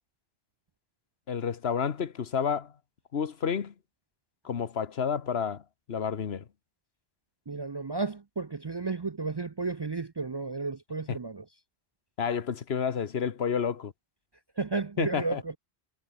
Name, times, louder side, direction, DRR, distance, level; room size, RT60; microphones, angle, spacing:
voice 1, 1.3-2.7 3.1-3.7 4.4-5.6 5.9-6.4 11.1-11.2 12.2-13.9 15.0-15.4, left 7 dB, 85° left, 1.4 m, -30 dB
voice 2, 7.5-11.4 14.6-15.6, right 3 dB, 35° right, 0.4 m, -33 dB
omnidirectional pair, 1.0 m